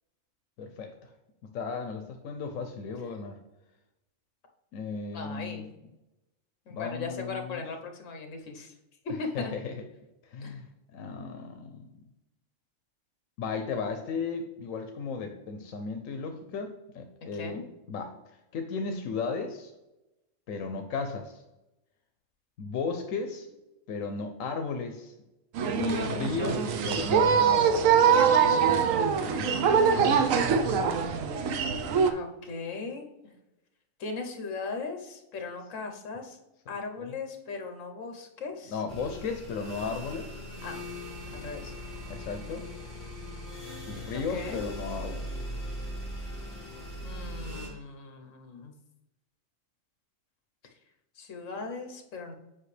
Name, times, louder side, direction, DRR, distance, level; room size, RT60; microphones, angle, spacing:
voice 1, 0.6-1.1 1.4-3.4 4.7-5.7 6.7-7.6 9.3-9.7 10.2-10.7 10.9-11.9 13.4-17.6 17.9-18.1 18.5-19.7 20.5-21.4 22.6-23.5 23.9-25.1 25.8-27.8 29.4-29.9 37.0-37.1 38.7-40.3 42.1-42.6 43.9-45.3, left 5 dB, 90° left, 5 dB, 1.1 m, -35 dB
voice 2, 5.1-5.7 6.7-8.7 9.0-9.5 10.4-10.6 17.3-17.6 32.0-33.3 34.0-36.4 36.7-38.8 40.6-40.8 41.3-41.7 44.1-44.6 47.0-48.7 51.1-52.3, left 4 dB, 70° left, 4 dB, 1.3 m, -38 dB
sound 1, 25.6-32.1, right 6 dB, 80° right, 1.0 m, -23 dB
sound 2, 38.9-47.7, equal, 35° left, 2.6 m, -39 dB
7.9 x 5.2 x 3.3 m, 0.95 s
omnidirectional pair, 1.4 m